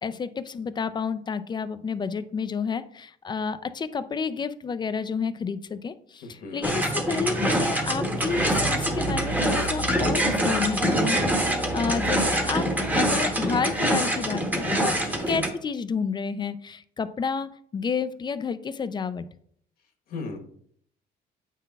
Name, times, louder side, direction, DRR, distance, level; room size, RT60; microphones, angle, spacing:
voice 1, 0.0-14.9 15.3-19.3, left 5 dB, 25° left, 12 dB, 0.4 m, -30 dB
voice 2, 6.2-6.7 15.0-15.3 20.1-20.4, left 3 dB, 65° left, 3 dB, 1.3 m, -36 dB
sound 1, 6.6-15.5, right 1 dB, 10° right, 1.0 m, -25 dB
8.1 x 5.7 x 2.3 m, 0.64 s
cardioid pair, 110°, 17 cm